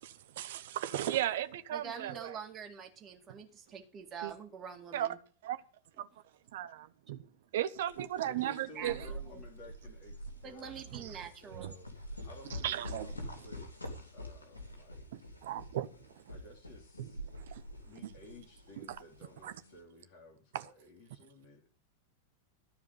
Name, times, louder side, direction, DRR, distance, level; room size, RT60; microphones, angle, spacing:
voice 1, 0.3-2.4 3.3-3.4 4.2-4.3 4.9-5.2 5.4-5.6 6.0-6.1 6.5-7.3 7.5-9.1 10.9-11.2 11.5-11.7 12.5-13.1 15.1-16.4 17.0-17.6 18.0-18.1 18.8-19.0 19.4-19.5 20.5-20.7, right 12 dB, 55° right, 0.8 m, -36 dB
voice 2, 1.7-5.2 8.7-8.9 10.4-11.7, right 7 dB, 25° right, 2.3 m, -45 dB
sound 1, 7.8-19.8, equal, 80° left, 3.0 m, -46 dB
voice 3, 8.2-13.7 14.1-15.0 16.3-17.2 17.9-21.7, left 1 dB, 40° left, 3.1 m, -55 dB
13.5 x 4.8 x 8.2 m
figure-of-eight pair, 90°, 0 cm